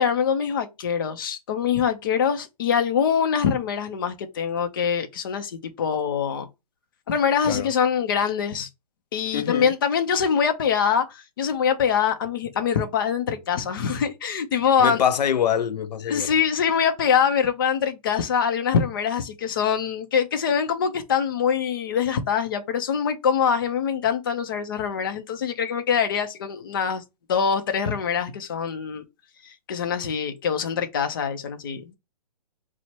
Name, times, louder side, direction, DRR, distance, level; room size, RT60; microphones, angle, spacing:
voice 1, 0.0-6.5 7.1-8.7 9.1-15.0 16.1-27.0 27.3-29.0 29.4-32.0, left 7 dB, 35° left, 0.5 m, -24 dB
voice 2, 9.3-9.7 14.8-16.3, left 8 dB, 90° left, 0.5 m, -24 dB
4.1 x 2.0 x 4.4 m
hypercardioid pair, 170°, 21 cm